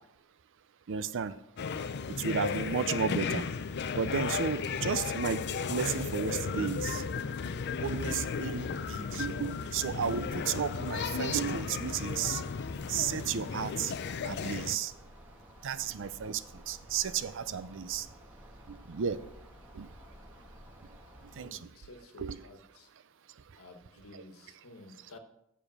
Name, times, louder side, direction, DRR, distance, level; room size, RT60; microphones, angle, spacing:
voice 1, 0.9-1.3 2.2-3.4 4.0-5.4 5.7-7.0 7.8-12.4 12.9-13.9 14.3-14.9 15.6-16.4 16.7-18.0 18.9-19.2 19.8-19.9 21.4-21.5 22.2-22.4, right 7 dB, 60° right, 14 dB, 0.5 m, -33 dB
sound 1, 1.6-14.8, left 5 dB, 50° left, 0.5 m, -34 dB
sound 2, 9.7-21.5, equal, 5° right, 1.3 m, -53 dB
voice 2, 21.3-22.9 23.6-25.2, left 2 dB, 70° left, 5 dB, 1.4 m, -52 dB
7.5 x 6.9 x 6.1 m, 0.81 s
head